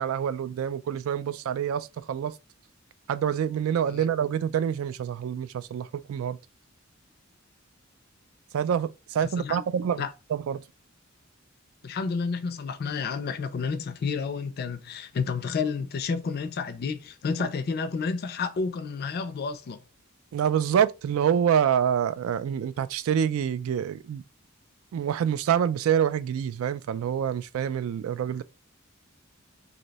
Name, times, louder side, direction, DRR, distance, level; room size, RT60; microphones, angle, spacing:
voice 1, 0.0-2.3 3.1-6.4 8.5-10.6 20.3-24.2 24.9-28.4, right 8 dB, 80° right, 0.3 m, -26 dB
voice 2, 9.2-9.6 10.0-10.1 11.8-19.8, left 5 dB, 50° left, 0.4 m, -30 dB
2.6 x 2.1 x 3.9 m
head